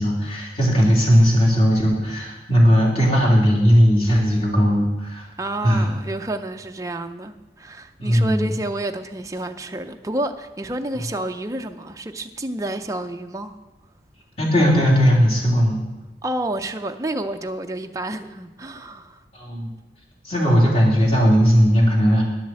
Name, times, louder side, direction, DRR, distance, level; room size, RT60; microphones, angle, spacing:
voice 1, 0.0-5.3 5.6-5.9 8.0-8.5 14.4-15.8 19.3-19.7 20.2-22.2, equal, 30° left, -3 dB, 2.9 m, -17 dB
voice 2, 5.4-13.5 16.2-19.2, right 1 dB, 20° right, 5 dB, 0.5 m, -29 dB
10.5 x 7.4 x 7.6 m, 1.1 s
head